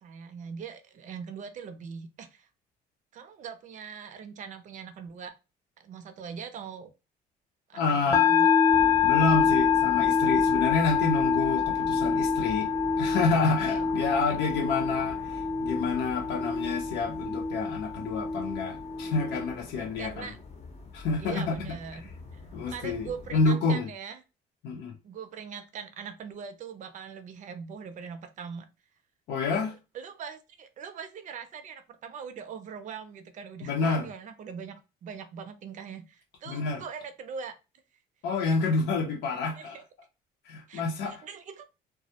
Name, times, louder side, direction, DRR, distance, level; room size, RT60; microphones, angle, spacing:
voice 1, 0.0-2.5 3.1-5.3 5.8-6.9 7.7-8.5 13.7-14.4 20.0-20.4 21.2-22.0 22.3-22.4 22.7-24.2 25.0-28.7 29.9-37.5 39.6-39.8 40.7-41.6, right 6 dB, 50° right, 0.5 m, -41 dB
voice 2, 7.7-8.3 9.0-12.7 13.0-20.3 20.9-21.7 22.5-23.9 24.6-24.9 29.3-29.7 33.6-34.0 36.5-36.8 38.2-39.8 40.5-41.2, left 4 dB, 80° left, 0.6 m, -28 dB
sound 1, 8.1-19.5, left 6 dB, 20° left, 0.4 m, -26 dB
sound 2, 8.7-23.5, left 2 dB, 40° left, 0.7 m, -44 dB
2.2 x 2.0 x 2.7 m
cardioid pair, 110°, 17 cm